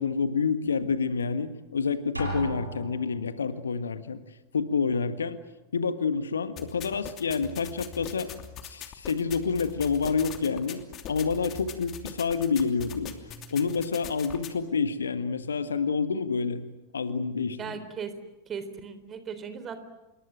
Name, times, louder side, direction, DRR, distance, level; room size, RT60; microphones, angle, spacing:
voice 1, 0.0-4.2 4.5-5.4 5.7-8.3 8.6-10.8 11.1-13.1 13.5-16.6 16.9-17.8, left 5 dB, 70° left, 12 dB, 1.6 m, -28 dB
Drum, 2.2-3.4, right 1 dB, 85° right, 6.4 m, -34 dB
sound 1, 6.6-14.5, left 8 dB, 35° left, 2.8 m, -42 dB
voice 2, 17.6-18.1 18.5-19.8, right 6 dB, 25° right, 11 dB, 3.8 m, -37 dB
27.5 x 22.5 x 9.1 m, 1.0 s
figure-of-eight pair, 90°, 0 cm